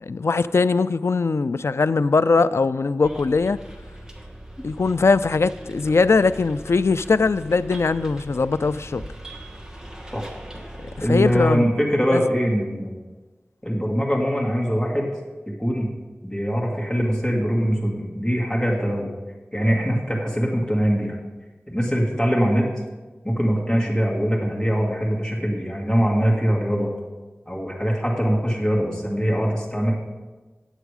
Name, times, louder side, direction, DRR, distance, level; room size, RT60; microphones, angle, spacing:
voice 1, 0.0-3.6 4.6-9.0 11.1-11.7 12.1-12.2, left 4 dB, 75° left, 14 dB, 0.3 m, -20 dB
Bus, 3.0-11.5, right 1 dB, 15° right, 1.3 m, -40 dB
voice 2, 11.0-13.0 13.6-15.1 15.5-15.9 16.2-19.1 19.5-21.2 21.7-22.7 23.2-26.9 27.5-29.9, equal, 15° left, -3 dB, 2.0 m, -22 dB
9.1 x 8.1 x 4.9 m, 1.2 s
wide cardioid pair, 60°, 5 cm